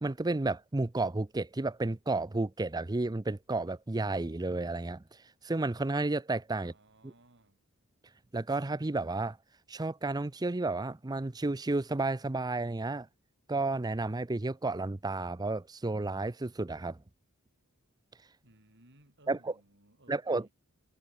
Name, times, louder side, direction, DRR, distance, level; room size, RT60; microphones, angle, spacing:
voice 1, 0.0-5.0 5.4-6.7 8.3-9.4 9.7-13.1 13.5-17.0 19.3-19.5 20.1-20.5, right 2 dB, 20° right, 0.6 m, -32 dB
voice 2, 6.6-7.6 18.4-20.5, right 1 dB, 55° right, 6.6 m, -62 dB
head